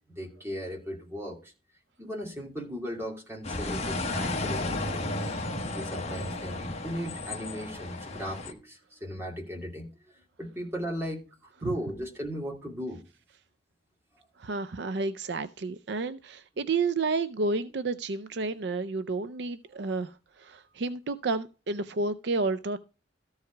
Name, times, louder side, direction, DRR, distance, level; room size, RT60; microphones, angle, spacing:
voice 1, 0.1-1.4 2.0-5.1 5.7-9.9 10.4-11.2 11.6-13.0, equal, 15° right, 2.6 m, -37 dB
sound 1, 3.4-8.5, left 2 dB, 35° left, 1.2 m, -33 dB
voice 2, 14.4-22.8, right 3 dB, 60° right, 0.5 m, -31 dB
14.0 x 4.8 x 4.5 m
head